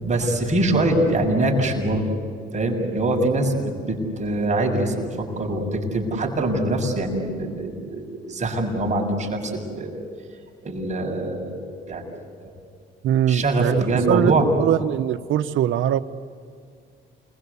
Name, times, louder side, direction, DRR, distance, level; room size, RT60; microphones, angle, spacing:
voice 1, 0.0-2.1 2.5-10.0 10.6-12.6 13.3-14.5, right 2 dB, 35° right, 1 dB, 7.1 m, -24 dB
voice 2, 13.0-16.0, right 10 dB, 80° right, 8 dB, 0.9 m, -22 dB
29.0 x 21.5 x 8.3 m, 2.2 s
cardioid pair, 90°, 20 cm